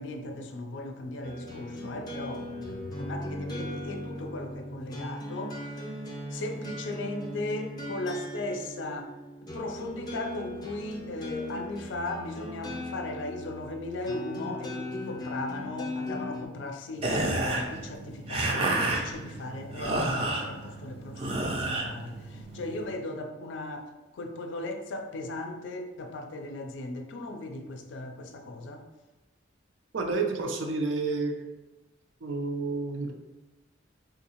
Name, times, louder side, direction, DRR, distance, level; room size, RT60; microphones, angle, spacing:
voice 1, 0.0-5.9 6.3-9.1 9.5-28.8, left 2 dB, 75° left, 5 dB, 0.4 m, -37 dB
sound 1, 1.2-16.4, left 1 dB, 20° left, 0.5 m, -38 dB
sound 2, 17.0-22.8, right 2 dB, 30° right, 0.4 m, -31 dB
voice 2, 29.9-31.5 32.2-33.1, right 3 dB, 85° right, 3 dB, 0.5 m, -30 dB
3.7 x 2.7 x 2.9 m, 1.1 s
head